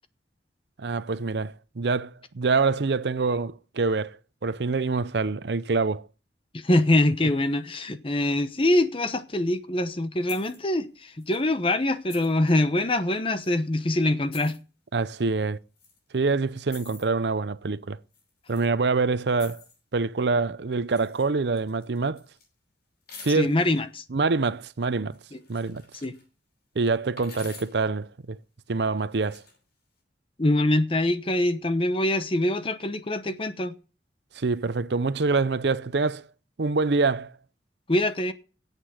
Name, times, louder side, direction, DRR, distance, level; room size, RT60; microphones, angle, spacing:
voice 1, 0.8-4.2 4.4-6.0 14.9-15.6 16.1-18.0 18.5-19.6 19.9-22.2 23.2-23.5 24.1-25.2 25.5-25.8 26.8-28.4 28.7-29.4 34.4-36.2 36.6-37.3, right 4 dB, 70° right, 0.6 m, -25 dB
voice 2, 6.5-14.6 23.3-24.0 26.0-26.1 30.4-33.7 37.9-38.3, left 1 dB, 30° left, 0.9 m, -24 dB
sound 1, 10.3-10.6 11.2-11.4 12.1-12.5 13.4-13.5 14.3-14.6 15.8-16.0 16.7-17.1 18.1-18.7 19.3-19.8 20.9-21.3 21.5-22.5 23.1-23.8 25.1-26.2 27.2-27.8 29.0-29.6, left 4 dB, 60° left, 5.9 m, -47 dB
9.7 x 8.3 x 8.3 m
head